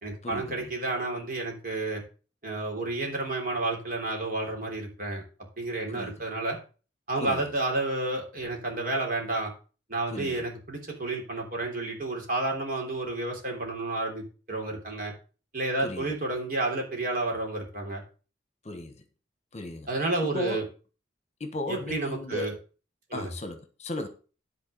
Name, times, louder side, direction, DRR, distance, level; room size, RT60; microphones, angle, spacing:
voice 1, 0.0-2.0 2.4-5.2 5.6-6.6 7.1-9.5 9.9-15.1 15.5-18.0 19.9-20.6 21.7-22.5 23.1-23.3, right 2 dB, 45° right, 3.5 m, -31 dB
voice 2, 19.5-19.9 20.3-20.6 21.4-22.5 23.1-24.1, left 2 dB, 35° left, 1.1 m, -35 dB
10.5 x 4.6 x 6.8 m
head